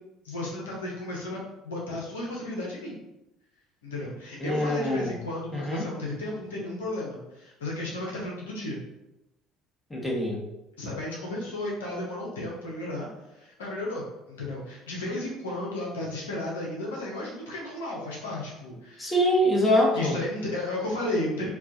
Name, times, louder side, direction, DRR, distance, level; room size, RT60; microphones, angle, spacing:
voice 1, 0.2-3.0 3.8-8.8 10.8-13.1 13.3-19.1 19.9-21.5, left 1 dB, 80° left, -4 dB, 0.8 m, -33 dB
voice 2, 4.4-5.2 5.5-5.8 9.9-10.4 19.0-20.2, equal, 15° left, -2 dB, 1.1 m, -24 dB
4.5 x 2.4 x 2.6 m, 0.91 s
figure-of-eight pair, 60°, 0 cm